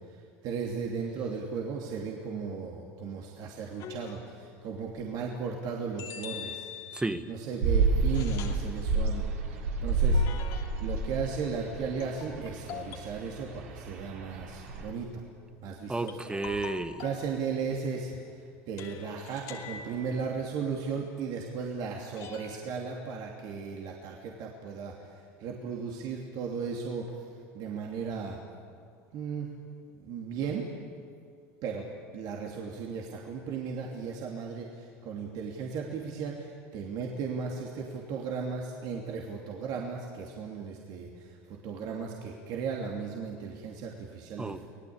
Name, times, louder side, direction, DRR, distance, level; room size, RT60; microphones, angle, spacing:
voice 1, 0.4-6.7 7.3-10.2 10.8-15.2 15.6-16.2 17.0-18.2 18.7-24.9 25.4-27.0 27.5-28.4 29.1-29.5 30.0-30.7 31.6-44.7, right 5 dB, 60° right, 0 dB, 2.8 m, -36 dB
sound 1, 3.8-4.5 6.0-7.3 8.1-8.7 10.1-11.0 12.0-13.3 16.1-17.3 18.8-20.5 22.2-22.6, left 8 dB, 60° left, 3.0 m, -44 dB
voice 2, 6.9-7.2 15.9-17.0 44.4-44.7, right 2 dB, 10° right, 10 dB, 1.5 m, -32 dB
sound 2, 7.6-14.9, right 3 dB, 90° right, 3.4 m, -29 dB
25.5 x 18.5 x 8.7 m, 2.3 s
supercardioid pair, 90°, 8 cm